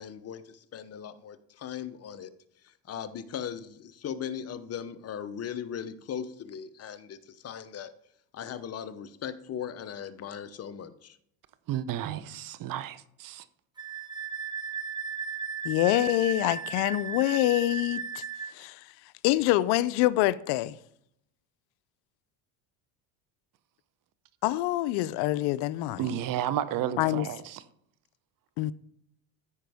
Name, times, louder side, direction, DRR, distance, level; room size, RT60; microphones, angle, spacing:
voice 1, 0.0-2.3 2.6-7.9 8.3-11.2, left 8 dB, 35° left, 0.8 m, -38 dB
voice 2, 11.7-13.4 26.0-27.6, right 11 dB, 55° right, 0.8 m, -32 dB
Wind instrument woodwind instrument, 13.8-18.5, right 6 dB, 10° right, 0.4 m, -36 dB
voice 3, 15.6-18.2 18.5-18.9 19.2-20.8 24.4-26.1 27.0-27.3 28.6-28.7, left 16 dB, 70° left, 0.6 m, -26 dB
14.0 x 5.1 x 3.5 m
supercardioid pair, 105°, 41 cm